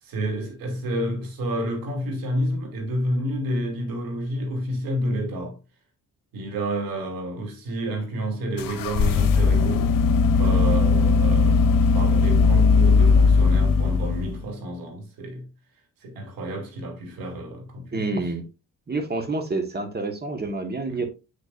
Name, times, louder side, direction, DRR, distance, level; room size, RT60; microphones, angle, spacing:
voice 1, 0.0-5.6 6.3-9.9 10.4-15.5 16.0-18.3 20.9-21.0, right 1 dB, 90° right, 2.7 m, -30 dB
sound 1, 8.6-14.5, left 4 dB, 75° left, 1.0 m, -18 dB
voice 2, 17.9-18.5 18.9-21.1, right 3 dB, 30° right, 1.5 m, -28 dB
7.5 x 6.6 x 2.6 m
cardioid pair, 90°, 34 cm